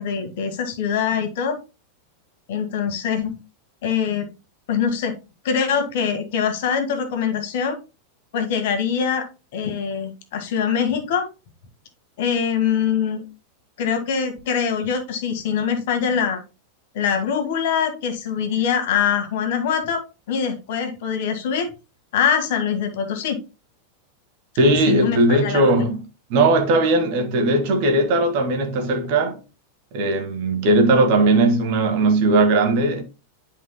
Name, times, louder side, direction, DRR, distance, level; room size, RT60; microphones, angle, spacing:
voice 1, 0.0-1.6 2.5-3.3 3.8-4.3 4.7-5.1 5.4-7.8 8.3-11.3 12.2-13.2 13.8-16.4 16.9-21.7 22.1-23.4 24.9-25.9, left 7 dB, 55° left, 1.7 m, -23 dB
voice 2, 24.6-26.0 26.3-29.4 29.9-33.0, right 2 dB, 45° right, 1.6 m, -18 dB
11.0 x 5.4 x 2.2 m
figure-of-eight pair, 90°, 0 cm